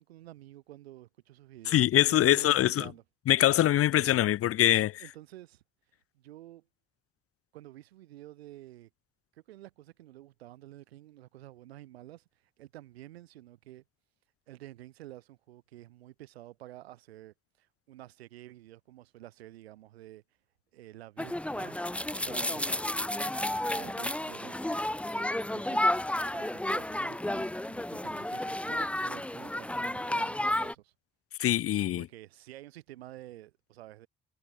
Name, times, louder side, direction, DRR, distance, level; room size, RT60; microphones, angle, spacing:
voice 1, 0.0-3.0 5.0-5.6 6.1-6.7 7.5-8.9 9.3-12.2 12.6-13.8 14.5-20.2 20.7-25.9 26.3-30.9 32.0-34.1, right 15 dB, 90° right, 7.7 m, -50 dB
voice 2, 1.7-2.9 3.3-5.0 31.4-32.1, left 13 dB, 50° left, 0.5 m, -24 dB
sound 1, 21.2-30.7, left 1 dB, 5° left, 0.6 m, -32 dB
hypercardioid pair, 50°, 30 cm